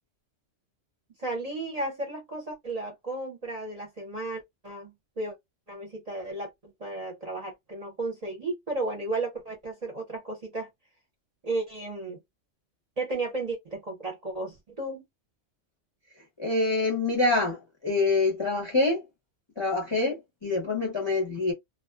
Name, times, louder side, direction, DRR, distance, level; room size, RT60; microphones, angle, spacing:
voice 1, 1.2-5.3 5.7-10.7 11.4-12.2 13.0-15.0, right 2 dB, 40° right, 0.6 m, -34 dB
voice 2, 16.4-19.0 19.6-21.5, left 3 dB, 30° left, 0.5 m, -26 dB
2.5 x 2.1 x 2.3 m
omnidirectional pair, 1.3 m